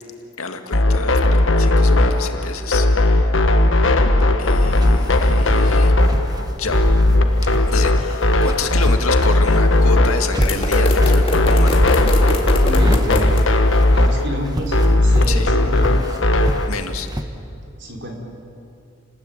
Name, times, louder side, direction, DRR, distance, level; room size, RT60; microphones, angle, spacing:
voice 1, 0.4-2.9 3.1-3.3 4.4-5.9 6.4-6.8 7.7-11.8 15.3-15.5 16.7-17.1, left 4 dB, 75° left, 6 dB, 2.1 m, -28 dB
sound 1, 0.7-16.7, left 1 dB, 60° left, 1.4 m, -16 dB
sound 2, 4.6-17.2, equal, 20° right, 1.3 m, -28 dB
sound 3, 10.4-13.4, left 2 dB, 25° left, 2.3 m, -25 dB
voice 2, 12.6-13.3 13.9-14.7 15.0-16.1 17.8-18.1, equal, 50° right, 1 dB, 4.8 m, -28 dB
30.0 x 20.5 x 9.0 m, 2.7 s
head